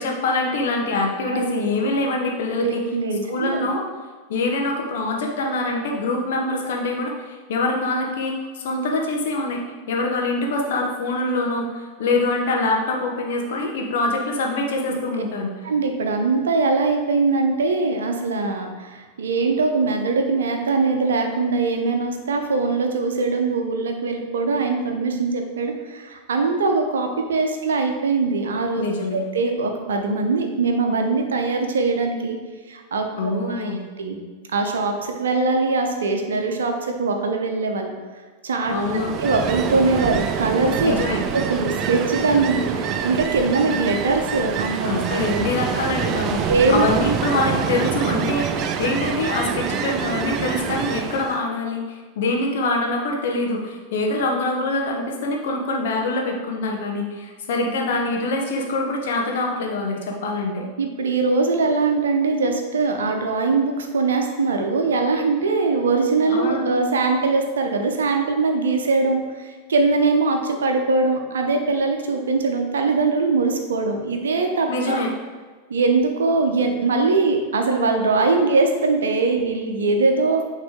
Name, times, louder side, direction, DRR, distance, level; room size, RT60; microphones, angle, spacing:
voice 1, 0.0-2.8 3.3-3.8 4.3-9.6 9.9-15.5 28.8-29.2 33.2-33.8 38.7-39.1 40.8-41.2 44.8-60.6 66.3-66.6 74.7-75.1, left 2 dB, 55° left, 1 dB, 1.0 m, -24 dB
voice 2, 1.3-1.6 2.6-3.6 14.9-15.0 15.6-28.8 29.1-32.4 32.7-33.1 33.5-33.7 34.0-34.2 34.5-37.9 38.4-38.7 39.2-41.0 41.3-44.9 46.5-46.8 60.8-75.0 75.7-80.4, right 3 dB, 65° right, 4 dB, 0.7 m, -21 dB
Ocean, 38.7-51.4, right 7 dB, 35° right, 0.4 m, -26 dB
8.7 x 3.3 x 3.6 m, 1.4 s
figure-of-eight pair, 90°, 0 cm